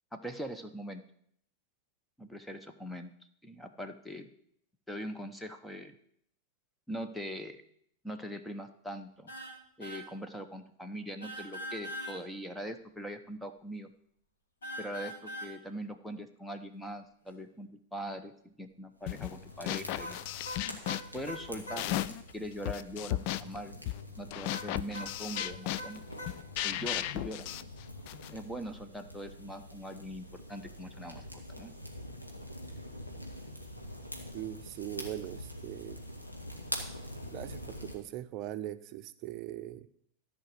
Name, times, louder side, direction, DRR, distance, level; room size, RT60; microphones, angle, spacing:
voice 1, 0.1-1.0 2.2-3.1 3.4-4.3 4.9-6.0 6.9-7.6 8.0-9.3 9.8-13.9 14.8-20.2 21.1-23.8 24.2-26.1 26.6-27.7 28.3-31.7, equal, 5° left, 8 dB, 1.0 m, -42 dB
sound 1, 9.3-9.5 9.8-10.0 11.2-12.2 14.6-15.5 20.0-21.8 24.5-26.3, equal, 70° left, 3.9 m, -41 dB
sound 2, 19.0-38.0, equal, 85° left, 2.1 m, -46 dB
sound 3, 19.1-19.4 19.7-22.3 22.6-28.4, left 14 dB, 45° left, 0.4 m, -36 dB
voice 2, 34.3-36.0 37.3-39.9, right 13 dB, 40° right, 11 dB, 0.7 m, -40 dB
14.0 x 5.2 x 7.8 m, 0.68 s
figure-of-eight pair, 90°, 0 cm